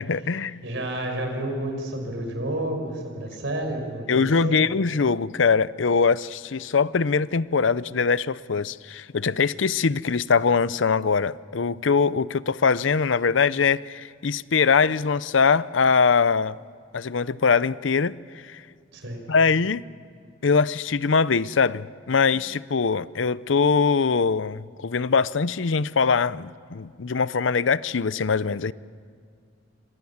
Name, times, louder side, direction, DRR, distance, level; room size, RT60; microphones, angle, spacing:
voice 1, 0.1-0.6 4.1-16.6 16.9-18.1 18.4-18.6 19.3-19.8 20.4-28.7, left 5 dB, 70° left, 0.6 m, -22 dB
voice 2, 0.6-4.6 18.9-19.2, right 1 dB, 70° right, 6.2 m, -30 dB
28.5 x 26.0 x 7.3 m
head